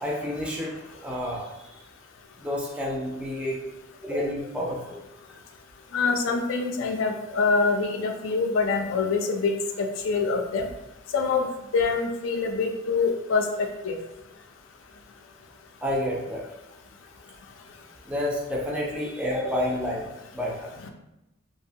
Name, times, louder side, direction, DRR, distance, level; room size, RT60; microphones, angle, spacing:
voice 1, 0.0-0.7 1.0-1.5 2.4-3.6 4.0-5.0 15.8-16.4 18.1-20.7, left 1 dB, 5° right, -3 dB, 0.3 m, -29 dB
voice 2, 5.9-10.7 11.1-11.5 11.7-14.0 20.8-20.9, left 4 dB, 80° left, 4 dB, 0.4 m, -25 dB
2.6 x 2.0 x 2.6 m, 0.92 s
head